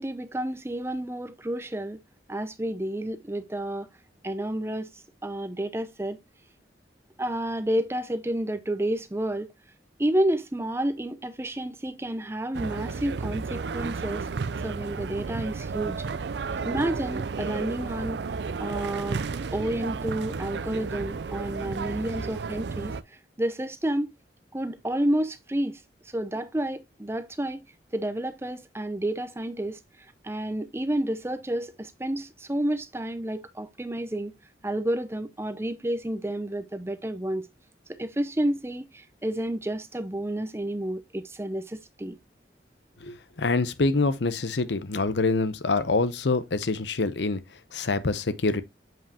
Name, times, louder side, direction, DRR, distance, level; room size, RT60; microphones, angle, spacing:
voice 1, 0.0-2.0 2.3-3.9 4.2-4.9 5.2-6.2 7.2-9.5 10.0-14.3 14.6-16.0 16.6-18.2 18.6-24.1 24.5-25.8 26.1-27.6 27.9-29.8 30.2-34.3 34.6-37.5 37.9-42.2, right 1 dB, 15° right, 0.6 m, -30 dB
sound 1, 12.5-23.0, right 4 dB, 75° right, 0.5 m, -33 dB
voice 2, 43.0-47.4 47.7-48.6, left 3 dB, 80° left, 0.8 m, -25 dB
7.7 x 5.4 x 2.8 m
head